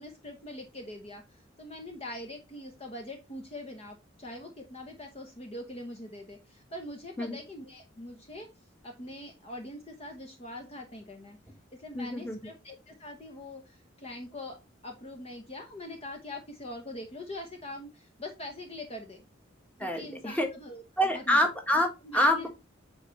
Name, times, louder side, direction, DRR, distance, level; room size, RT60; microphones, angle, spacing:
voice 1, 0.0-8.5 8.8-11.4 11.7-14.6 14.8-19.2 19.8-20.8 21.1-21.4 22.0-22.5, left 1 dB, 30° left, 4 dB, 1.0 m, -43 dB
voice 2, 11.9-12.4 19.8-20.5 21.0-22.5, equal, 10° left, 4 dB, 1.3 m, -26 dB
9.1 x 3.9 x 3.1 m, 0.25 s
head